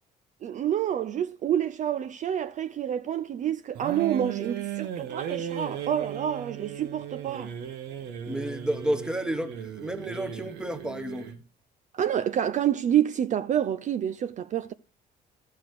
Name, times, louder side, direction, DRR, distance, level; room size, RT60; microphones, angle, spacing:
voice 1, 0.4-7.5 11.9-14.7, right 10 dB, 45° right, 0.5 m, -28 dB
sound 1, 3.7-11.4, right 9 dB, 85° right, 1.5 m, -36 dB
voice 2, 8.3-11.3, right 1 dB, 5° right, 1.2 m, -31 dB
13.0 x 6.2 x 4.7 m
cardioid pair, 110°, 17 cm